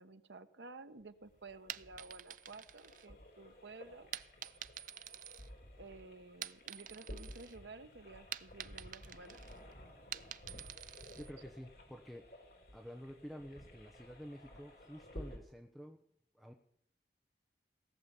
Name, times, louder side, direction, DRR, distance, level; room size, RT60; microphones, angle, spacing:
voice 1, 0.0-4.1 5.8-9.4, right 3 dB, 85° right, 10 dB, 1.1 m, -53 dB
sound 1, 1.0-15.4, left 1 dB, 60° left, 3.8 m, -54 dB
sound 2, 1.5-3.5 4.1-5.9 6.3-7.6 7.9-11.3, right 10 dB, 50° right, 0.5 m, -48 dB
voice 2, 11.2-12.4 12.7-16.0 16.3-16.5, equal, ahead, 2 dB, 0.9 m, -50 dB
17.5 x 7.3 x 9.8 m, 0.68 s
head